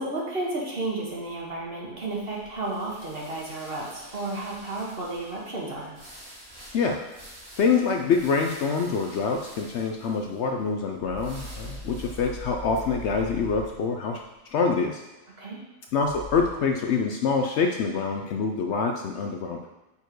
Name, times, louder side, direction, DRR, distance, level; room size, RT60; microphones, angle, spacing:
voice 1, 0.0-5.9 15.4-15.6, right 2 dB, 45° right, -3 dB, 1.5 m, -32 dB
sound 1, 1.2-14.3, equal, 65° right, 2.8 m, -49 dB
voice 2, 6.7-7.2 7.6-14.2 14.5-15.0 15.9-19.7, left 5 dB, 65° left, 3 dB, 0.7 m, -25 dB
sound 2, 11.0-14.0 16.0-16.8, equal, 30° left, 1.7 m, -40 dB
6.9 x 4.6 x 4.6 m, 1.1 s
omnidirectional pair, 1.4 m